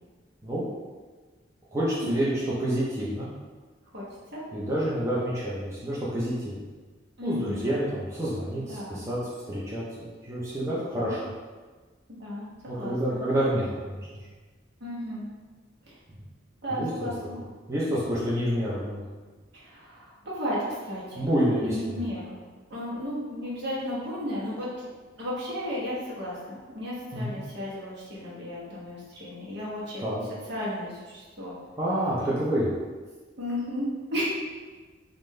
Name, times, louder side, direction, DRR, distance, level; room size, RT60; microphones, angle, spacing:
voice 1, 1.7-2.3 2.6-3.3 4.5-6.5 7.2-9.2 9.5-11.3 12.7-14.2 16.1-16.2 16.7-17.1 17.7-19.1 21.2-22.0 27.1-27.4 30.0-30.2 31.8-32.7, equal, 15° right, -8 dB, 0.5 m, -28 dB
voice 2, 7.2-7.7 8.7-9.0 11.0-11.1 12.2-13.2 14.8-15.2 16.6-17.4 18.1-18.2 19.5-21.2 21.6-22.4 22.7-24.7 25.2-30.0 30.5-31.5 33.4-34.3, left 1 dB, 60° right, -7 dB, 1.1 m, -34 dB
3.7 x 2.5 x 3.2 m, 1.4 s
head